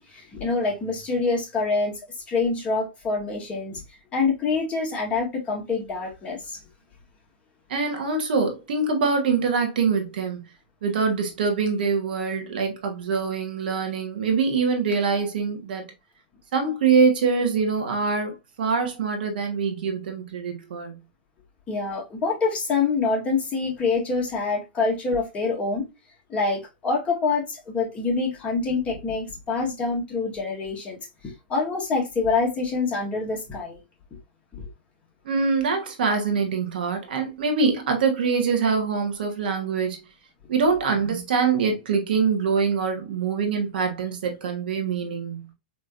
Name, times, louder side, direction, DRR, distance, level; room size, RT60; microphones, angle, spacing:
voice 1, 0.0-1.9 2.3-3.8 4.1-6.6 21.7-25.9 26.3-33.8 34.5-34.7, left 4 dB, 25° left, 1.9 m, -26 dB
voice 2, 7.7-10.4 10.8-15.9 16.5-18.3 18.6-20.9 35.2-40.0 40.5-45.5, right 5 dB, 70° right, 1.2 m, -24 dB
4.2 x 3.0 x 2.4 m
hypercardioid pair, 115°, 5 cm